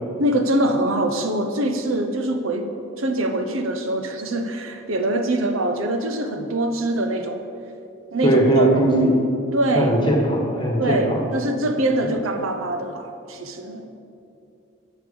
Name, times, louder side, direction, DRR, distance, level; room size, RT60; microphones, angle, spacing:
voice 1, 0.2-2.7 3.0-7.5 8.1-8.7 9.5-9.9 10.8-13.9, right 1 dB, 90° right, 6 dB, 0.8 m, -23 dB
voice 2, 8.2-9.2 9.7-11.2, right 1 dB, 25° left, 0 dB, 1.4 m, -19 dB
9.1 x 5.8 x 7.0 m, 2.5 s
head